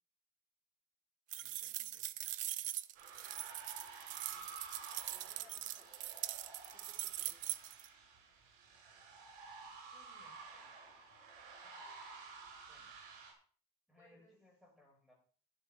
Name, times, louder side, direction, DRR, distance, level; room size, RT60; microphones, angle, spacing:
sound 1, 1.3-7.9, right 14 dB, 55° right, 0.6 m, -42 dB
voice 1, 1.4-2.1 4.9-5.3 9.9-10.7 11.6-12.0 12.7-13.0 13.9-15.1, left 1 dB, ahead, -1 dB, 5.2 m, -69 dB
sound 2, 2.9-13.3, right 4 dB, 85° right, 4.8 m, -53 dB
voice 2, 4.3-5.9 6.7-7.6 14.0-14.3, left 3 dB, 20° left, -5 dB, 3.2 m, -67 dB
13.0 x 10.5 x 3.4 m, 0.42 s
cardioid pair, 155°, 16 cm